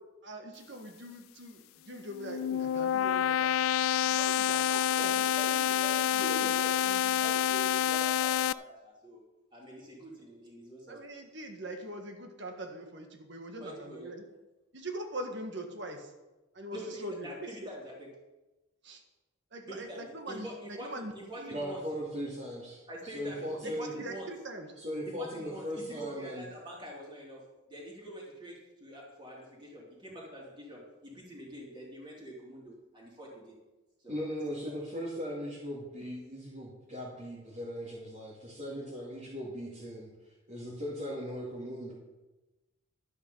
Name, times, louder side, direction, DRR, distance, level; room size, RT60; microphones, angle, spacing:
voice 1, 0.2-3.6 4.1-5.1 5.4-5.6 6.2-6.5 7.3-7.5 10.9-14.2 14.7-16.1 16.5-17.7 18.8-19.0 19.5-21.5 23.6-24.7, right 1 dB, 55° right, 5 dB, 1.6 m, -42 dB
sound 1, 2.0-8.5, left 11 dB, 75° left, 0.3 m, -28 dB
voice 2, 5.0-9.2 9.5-11.0 13.6-14.1 16.7-18.1 19.7-21.8 22.9-24.3 25.0-33.6 34.0-34.2 34.5-34.6, right 1 dB, 20° right, -3 dB, 3.3 m, -45 dB
voice 3, 21.5-23.9 24.8-26.5 34.1-40.1 40.5-41.9, equal, 40° right, -7 dB, 2.6 m, -38 dB
11.5 x 9.5 x 5.5 m, 1.1 s
head